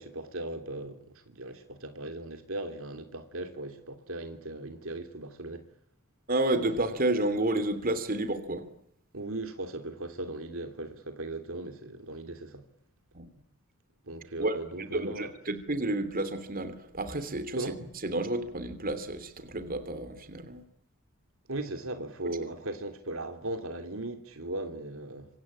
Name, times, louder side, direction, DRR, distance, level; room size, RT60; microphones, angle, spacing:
voice 1, 0.0-5.6 9.1-12.6 14.0-15.3 17.5-17.8 21.5-25.3, right 2 dB, 70° right, 3.1 m, -38 dB
voice 2, 6.3-8.7 13.1-13.3 14.4-17.7 18.0-20.6, right 2 dB, 40° right, 3.0 m, -30 dB
26.0 x 26.0 x 8.7 m
head